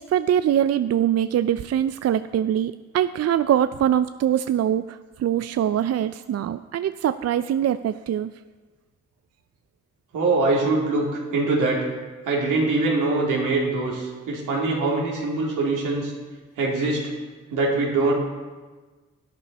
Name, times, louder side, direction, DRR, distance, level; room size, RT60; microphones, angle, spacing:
voice 1, 0.0-8.3, right 10 dB, 55° right, 12 dB, 0.4 m, -23 dB
voice 2, 10.1-11.8 12.3-16.1 16.6-17.1 17.5-18.1, right 3 dB, 90° right, -3 dB, 2.6 m, -23 dB
11.5 x 10.5 x 4.2 m, 1.3 s
supercardioid pair, 45°, 31 cm